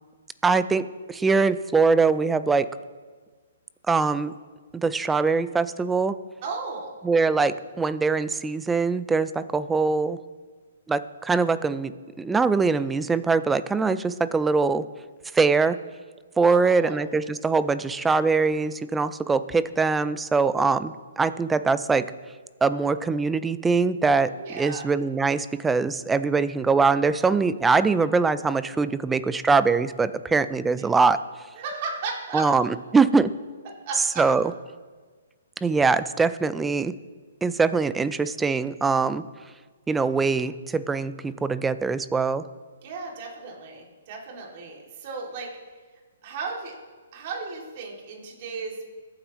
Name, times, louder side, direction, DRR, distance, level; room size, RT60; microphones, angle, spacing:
voice 1, 0.4-2.7 3.9-4.3 4.7-6.1 7.0-10.2 10.9-11.9 12.2-14.8 15.3-15.8 16.4-22.1 22.6-31.2 32.3-33.3 34.2-34.5 35.6-36.9 37.4-39.2 39.9-42.4, right 4 dB, 10° right, 14 dB, 0.5 m, -22 dB
voice 2, 6.4-6.9 16.5-16.9 24.4-24.8 30.8-30.9 31.6-32.4 33.9-34.2 42.8-45.5 46.2-46.7 47.1-48.8, right 4 dB, 45° right, -1 dB, 2.7 m, -35 dB
22.0 x 8.8 x 3.1 m, 1.4 s
hypercardioid pair, 135°, 0 cm